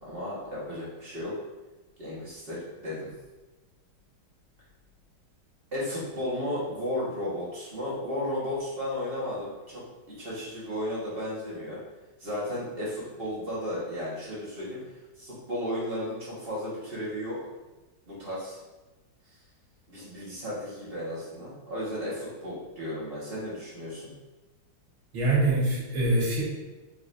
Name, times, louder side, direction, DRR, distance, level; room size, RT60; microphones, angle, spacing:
voice 1, 0.0-1.3 2.0-3.1 5.7-9.8 10.2-11.8 12.2-14.8 15.2-17.4 18.1-18.6 19.9-24.1, left 1 dB, 30° right, -8 dB, 1.5 m, -34 dB
voice 2, 25.1-26.4, right 2 dB, 80° right, -5 dB, 2.1 m, -24 dB
4.9 x 3.9 x 2.6 m, 1.1 s
omnidirectional pair, 2.2 m